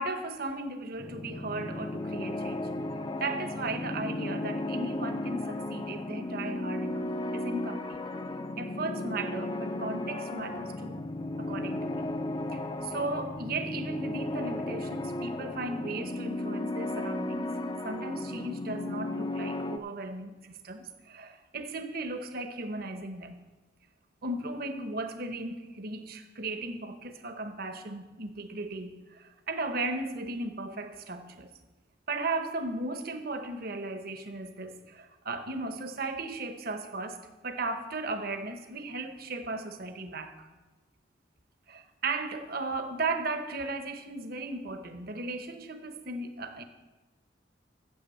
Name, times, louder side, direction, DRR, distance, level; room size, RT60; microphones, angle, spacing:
voice 1, 0.0-2.7 3.2-8.0 8.6-11.1 11.4-12.1 12.5-17.5 17.8-23.4 24.2-31.5 32.1-37.2 37.4-40.5 41.7-46.6, right 2 dB, 55° right, 7 dB, 1.0 m, -36 dB
sound 1, 1.0-19.8, left 1 dB, 25° left, 0.5 m, -35 dB
9.3 x 7.9 x 7.0 m, 1.2 s
head